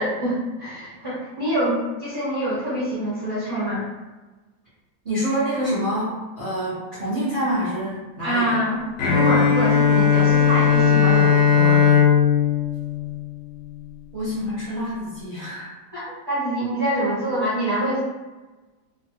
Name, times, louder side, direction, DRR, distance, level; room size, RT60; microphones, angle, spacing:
voice 1, 0.0-3.8 8.2-8.8 9.1-11.8 15.9-18.0, equal, 20° right, -10 dB, 0.7 m, -25 dB
voice 2, 5.0-6.1 6.4-8.6 14.1-15.7, equal, 55° right, -10 dB, 0.4 m, -26 dB
Bowed string instrument, 9.0-13.9, left 7 dB, 65° left, 0.8 m, -18 dB
3.0 x 2.2 x 2.8 m, 1.2 s
omnidirectional pair, 2.0 m